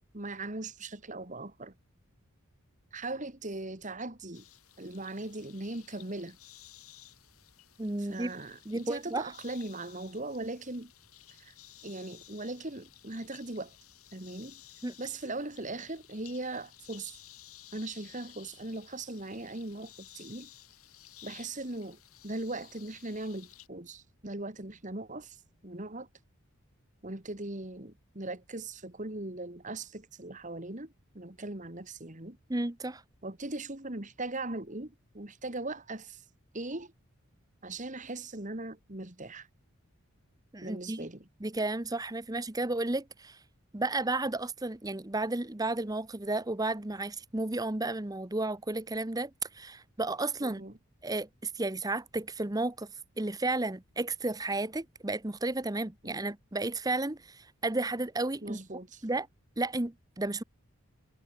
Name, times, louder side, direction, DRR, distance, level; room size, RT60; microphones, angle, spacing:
voice 1, 0.1-1.7 2.9-4.4 4.8-6.4 8.0-10.9 11.3-11.5 11.8-13.8 14.1-14.6 15.0-17.2 17.7-20.5 21.2-22.0 22.2-25.4 25.6-26.1 27.0-32.4 33.2-36.2 36.5-36.9 37.6-39.5 40.6-41.2 50.4-50.7 56.0-56.2 58.4-59.0, right 2 dB, 35° right, 2.2 m, -39 dB
sound 1, 4.3-23.7, left 14 dB, 80° left, 5.5 m, -55 dB
voice 2, 7.8-8.3 8.7-9.2 14.8-14.9 32.5-33.0 40.5-41.1 41.4-43.4 43.7-50.6 51.0-52.9 53.2-58.6 59.0-59.3 59.6-60.4, right 2 dB, 15° right, 0.9 m, -33 dB
head